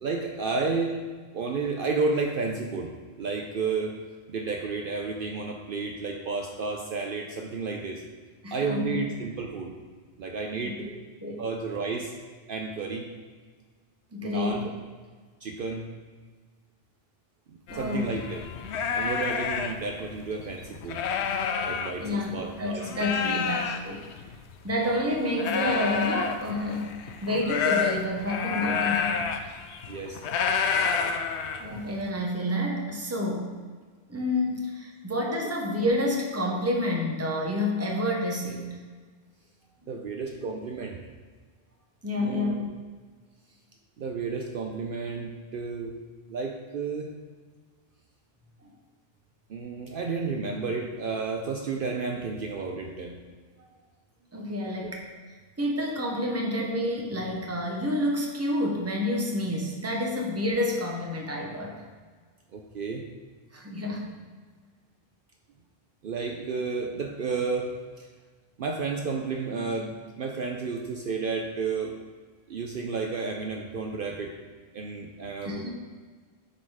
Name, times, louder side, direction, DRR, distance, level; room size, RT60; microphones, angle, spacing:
voice 1, 0.0-0.9 1.3-2.9 3.2-4.0 4.3-8.0 8.5-9.7 10.2-10.9 11.4-12.1 12.5-13.1 14.2-14.7 15.4-15.9 17.5-18.4 18.9-21.0 21.7-22.9 23.2-23.4 29.9-30.2 39.9-41.0 42.2-42.6 44.0-45.9 46.3-47.1 49.5-53.2 54.8-55.0 56.6-56.7 62.5-63.0 66.0-68.1 68.6-72.0 72.5-74.4 74.7-75.7, right 4 dB, 60° right, 2 dB, 0.7 m, -31 dB
voice 2, 8.4-9.0 10.6-11.4 14.1-14.7 17.7-18.2 21.9-24.1 24.6-29.2 31.6-33.6 34.1-38.8 42.0-42.7 48.6-48.7 53.6-53.7 54.3-55.1 55.6-61.8 63.5-64.2 75.4-75.7, left 1 dB, 15° right, 0 dB, 0.9 m, -29 dB
sound 1, 17.7-22.5 22.8-32.0, left 6 dB, 90° left, 0.9 m, -29 dB
7.6 x 3.9 x 4.8 m, 1.5 s
omnidirectional pair, 1.1 m